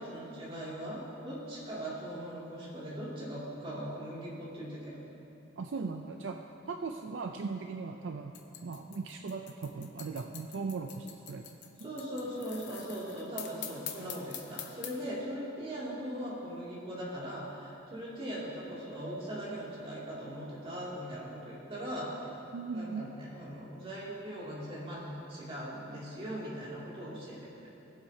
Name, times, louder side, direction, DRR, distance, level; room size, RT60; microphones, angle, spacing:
voice 1, 0.0-5.0 11.8-22.1 22.7-27.8, equal, 30° right, -7 dB, 2.6 m, -40 dB
voice 2, 5.6-6.4 6.7-8.4 8.6-11.5 11.8-11.9 22.5-23.0, right 4 dB, 70° right, 4 dB, 0.4 m, -38 dB
sound 1, 8.3-15.0, left 9 dB, 60° left, 0.8 m, -45 dB
18.5 x 7.7 x 2.8 m, 2.9 s
head